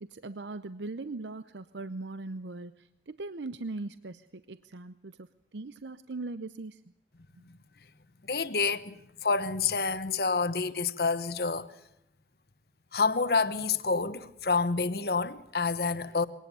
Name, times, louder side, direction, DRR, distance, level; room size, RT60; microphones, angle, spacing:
voice 1, 0.0-6.8, right 3 dB, 80° right, 0.7 m, -40 dB
voice 2, 8.3-8.9 9.2-11.7 12.9-16.3, left 4 dB, 60° left, 1.1 m, -28 dB
22.5 x 18.5 x 6.9 m
head